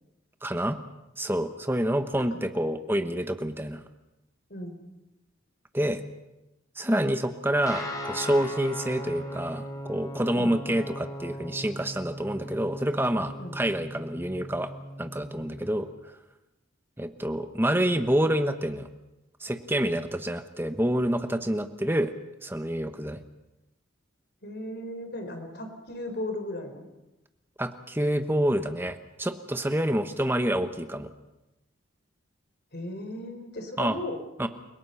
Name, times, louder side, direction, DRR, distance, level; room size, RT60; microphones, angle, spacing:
voice 1, 0.4-0.8 1.2-3.8 5.7-6.0 6.8-14.7 15.0-15.9 17.0-18.9 19.4-22.1 22.4-23.2 27.6-31.1 33.8-34.0 34.4-34.5, right 1 dB, 10° right, 8 dB, 1.1 m, -27 dB
Guitar, 7.6-15.7, equal, 20° left, 3.4 m, -38 dB
voice 2, 24.4-26.8 32.7-34.2, left 1 dB, 55° left, 5 dB, 4.2 m, -36 dB
29.5 x 18.0 x 5.8 m, 0.98 s
head